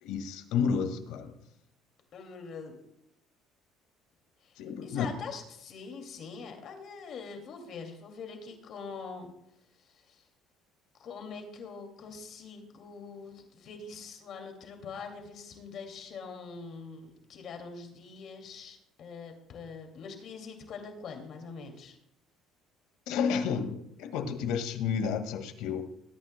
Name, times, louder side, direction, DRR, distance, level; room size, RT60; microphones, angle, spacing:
voice 1, 0.0-1.4 4.6-5.1 23.1-25.8, left 6 dB, 80° left, 7 dB, 1.9 m, -31 dB
voice 2, 2.1-2.8 4.4-9.3 9.8-10.2 11.0-22.0, left 5 dB, 50° left, 4 dB, 2.4 m, -44 dB
20.5 x 13.0 x 2.2 m, 0.78 s
cardioid pair, 140°, 0 cm